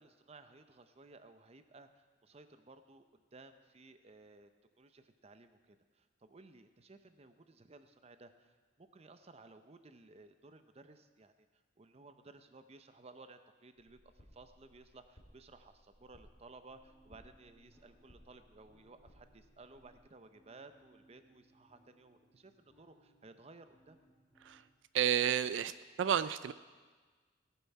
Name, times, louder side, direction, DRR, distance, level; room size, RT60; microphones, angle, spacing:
voice 1, 0.0-4.5 4.8-24.0, right 3 dB, 35° right, 9 dB, 0.7 m, -58 dB
sound 1, 13.8-20.0, equal, 50° left, 2.3 m, -64 dB
sound 2, 16.7-24.7, right 1 dB, 10° left, 2.3 m, -69 dB
voice 2, 24.9-25.7 26.0-26.5, right 9 dB, 90° right, 14 dB, 0.3 m, -31 dB
18.5 x 7.0 x 4.7 m, 1.4 s
head